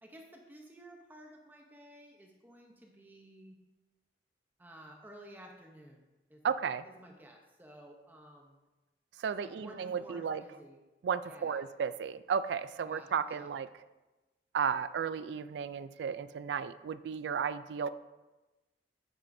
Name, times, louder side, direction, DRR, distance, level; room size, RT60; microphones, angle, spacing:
voice 1, 0.0-3.6 4.6-6.4 6.8-8.6 9.4-10.8 11.2-11.7 12.8-13.5, right 1 dB, 10° right, 1 dB, 0.7 m, -53 dB
voice 2, 6.4-6.8 9.2-10.4 11.0-13.7 14.5-17.9, right 7 dB, 75° right, 14 dB, 0.3 m, -34 dB
9.0 x 8.9 x 2.6 m, 1.1 s
head